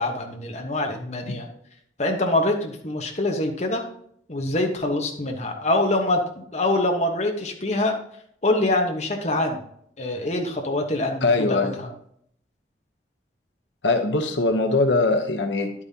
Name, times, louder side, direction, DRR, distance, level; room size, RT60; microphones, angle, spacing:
voice 1, 0.0-1.5 2.0-3.8 4.3-7.9 8.4-9.6 10.0-11.9, left 2 dB, 40° left, 2 dB, 1.2 m, -24 dB
voice 2, 11.2-11.7 13.8-15.7, left 3 dB, 85° left, 6 dB, 1.0 m, -21 dB
10.5 x 8.8 x 2.9 m, 0.67 s
head